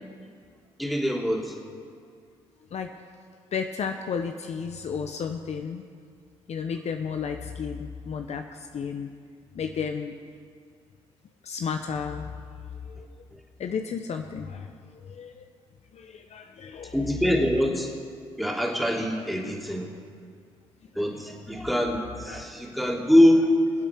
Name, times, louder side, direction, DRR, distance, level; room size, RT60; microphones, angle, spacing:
voice 1, 0.8-1.5 16.9-17.9 18.4-19.9 21.0-23.5, equal, ahead, -1 dB, 3.0 m, -23 dB
voice 2, 3.5-5.8 6.5-8.4 8.7-9.1 9.6-10.1 11.4-12.2 12.9-13.1 13.6-14.7 15.0-15.4 15.9-17.0 21.3-21.4, left 6 dB, 55° left, 6 dB, 0.9 m, -32 dB
24.0 x 8.3 x 4.6 m, 2.2 s
hypercardioid pair, 50°, 14 cm